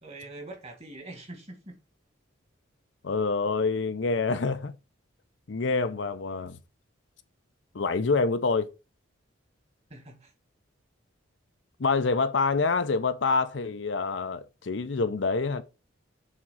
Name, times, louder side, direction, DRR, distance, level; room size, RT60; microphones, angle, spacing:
voice 1, 0.0-1.8 9.9-10.3, right 2 dB, 35° right, 2.0 m, -44 dB
voice 2, 3.0-4.7 5.5-6.6 7.7-8.7 11.8-15.6, left 4 dB, 65° left, 0.6 m, -26 dB
7.4 x 3.7 x 5.5 m
head